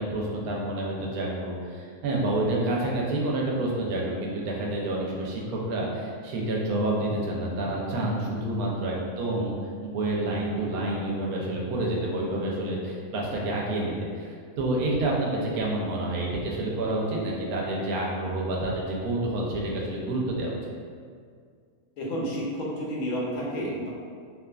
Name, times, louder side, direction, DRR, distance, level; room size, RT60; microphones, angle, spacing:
voice 1, 0.0-9.6 9.8-20.6, right 1 dB, 90° right, -3 dB, 1.1 m, -28 dB
voice 2, 22.0-23.9, equal, 80° left, -4 dB, 1.1 m, -31 dB
2.7 x 2.4 x 2.2 m, 2.1 s
omnidirectional pair, 1.5 m